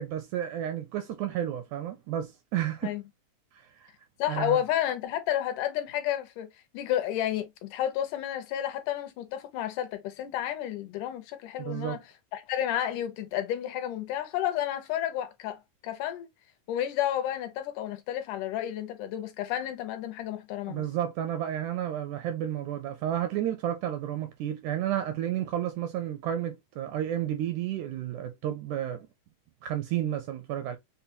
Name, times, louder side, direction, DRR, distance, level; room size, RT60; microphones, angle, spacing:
voice 1, 0.0-2.9 3.8-3.9 4.3-4.6 11.6-12.0 20.7-29.1 29.6-30.8, right 11 dB, 80° right, 1.7 m, -31 dB
voice 2, 4.2-6.5 6.7-12.0 12.3-16.3 16.7-20.9, left 11 dB, 80° left, 2.1 m, -31 dB
5.5 x 2.2 x 2.6 m
omnidirectional pair, 3.8 m